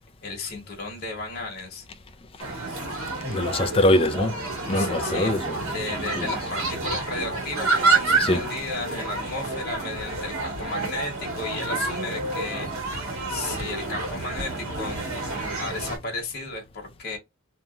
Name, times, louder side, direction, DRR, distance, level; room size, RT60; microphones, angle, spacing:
voice 1, 0.2-1.9 4.7-5.3 5.6-15.2 15.6-17.2, left 3 dB, 45° left, 1.1 m, -34 dB
sound 1, 2.4-16.0, right 3 dB, 75° right, 1.4 m, -28 dB
voice 2, 3.2-4.4 4.7-5.7 6.2-6.3 8.2-8.4, left 1 dB, 25° left, 0.4 m, -23 dB
2.9 x 2.2 x 2.4 m
head